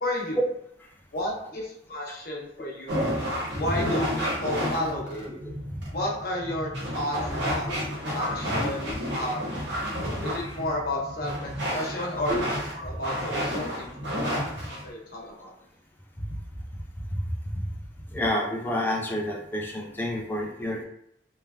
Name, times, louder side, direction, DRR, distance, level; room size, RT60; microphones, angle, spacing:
voice 1, 0.0-0.4 1.1-3.0 3.5-5.3 5.9-7.7 8.1-9.5 10.2-12.4 12.7-14.3 14.7-15.5, left 1 dB, 55° left, -2 dB, 0.7 m, -32 dB
sound 1, 2.9-14.9, equal, 85° right, 0.9 m, -31 dB
voice 2, 18.1-20.8, left 1 dB, 10° left, -1 dB, 0.3 m, -29 dB
3.1 x 2.2 x 2.3 m, 0.74 s
head